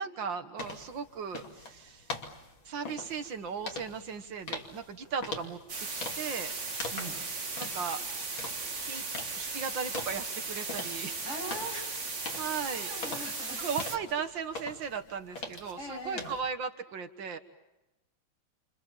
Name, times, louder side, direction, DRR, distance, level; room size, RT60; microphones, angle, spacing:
voice 1, 0.0-2.1 2.7-5.6 5.9-6.5 7.6-8.0 8.8-9.0 9.4-11.2 12.4-12.9 13.5-17.4, right 6 dB, 75° right, 8 dB, 2.1 m, -37 dB
sound 1, 0.6-16.4, left 3 dB, 90° left, 3.4 m, -44 dB
sound 2, 5.7-14.0, right 3 dB, 40° right, 2.3 m, -37 dB
voice 2, 6.9-7.2 11.2-13.7 15.8-16.3, equal, 35° left, 1 dB, 8.4 m, -42 dB
29.5 x 28.0 x 7.2 m, 0.99 s
omnidirectional pair, 2.1 m